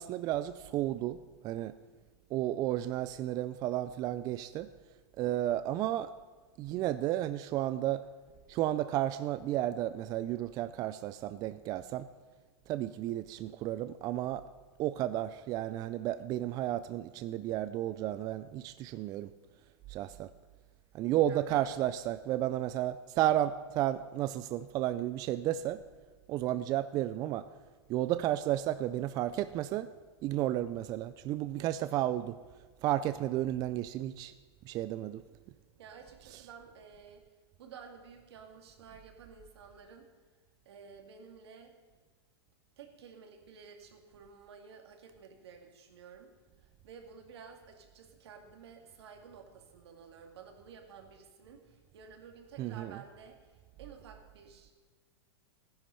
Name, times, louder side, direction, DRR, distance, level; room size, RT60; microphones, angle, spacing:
voice 1, 0.0-1.7 2.3-4.7 5.2-6.1 6.6-8.0 8.5-12.1 12.7-14.4 14.8-19.3 19.9-20.3 20.9-25.8 26.3-27.5 27.9-29.9 30.2-32.4 32.8-34.3 34.6-35.2 36.3-36.4 52.6-53.0, right 13 dB, 25° right, 13 dB, 0.4 m, -32 dB
voice 2, 21.2-21.8 35.8-37.2 37.6-40.1 40.7-41.7 42.8-46.3 46.6-54.7, right 6 dB, 75° right, 4 dB, 2.3 m, -52 dB
14.0 x 10.5 x 5.7 m, 1.4 s
hypercardioid pair, 140°, 14 cm